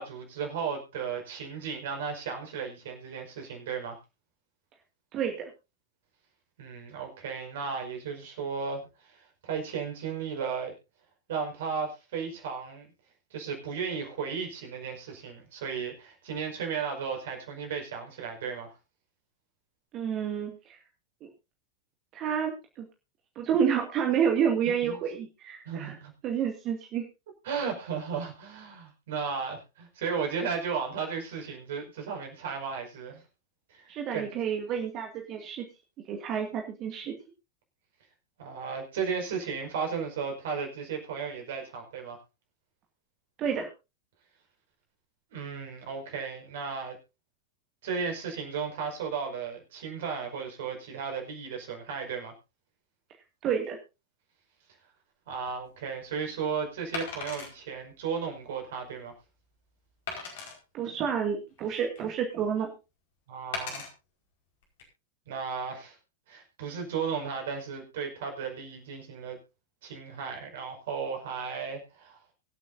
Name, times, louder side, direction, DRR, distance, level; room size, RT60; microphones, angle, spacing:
voice 1, 0.0-4.0 6.6-8.8 9.4-10.7 11.3-12.9 13.3-18.7 24.6-25.0 25.6-26.1 27.4-33.2 33.7-34.3 38.4-42.2 45.3-46.9 47.8-52.3 55.3-59.1 63.3-63.8 65.3-65.9 66.3-69.4 69.8-72.2, right 6 dB, 55° right, 2 dB, 5.3 m, -35 dB
voice 2, 5.1-5.5 19.9-20.8 21.2-21.3 22.1-22.9 23.4-26.0 26.2-27.0 33.9-35.7 36.1-37.1 43.4-43.7 53.4-53.8 60.7-62.7, right 8 dB, 35° right, 3 dB, 2.2 m, -29 dB
Wood, 55.3-55.5 56.9-57.5 58.2-58.3 58.8-58.9 60.1-60.6 61.3-62.1 63.5-63.9 64.6-64.8, left 5 dB, 55° left, 4.8 m, -38 dB
24.0 x 8.4 x 2.7 m, 0.28 s
figure-of-eight pair, 90°, 0 cm